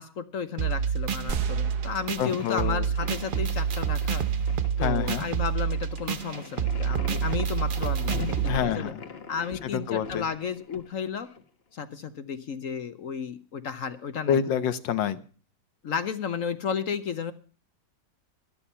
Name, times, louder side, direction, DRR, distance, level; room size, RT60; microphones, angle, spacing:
voice 1, 0.0-4.3 4.8-8.9 9.3-11.3 11.7-14.4 15.8-17.3, left 7 dB, 55° left, 11 dB, 1.0 m, -33 dB
sound 1, 0.6-8.6, right 7 dB, 80° right, 0.4 m, -28 dB
sound 2, 1.3-3.6, right 4 dB, 60° right, 1.6 m, -40 dB
sound 3, 2.0-11.4, left 5 dB, 40° left, 1.2 m, -42 dB
voice 2, 2.2-2.9 4.8-5.2 8.4-9.0 9.6-10.3 14.3-15.2, left 9 dB, 80° left, 12 dB, 1.6 m, -27 dB
12.5 x 11.5 x 5.6 m, 0.39 s
omnidirectional pair, 2.0 m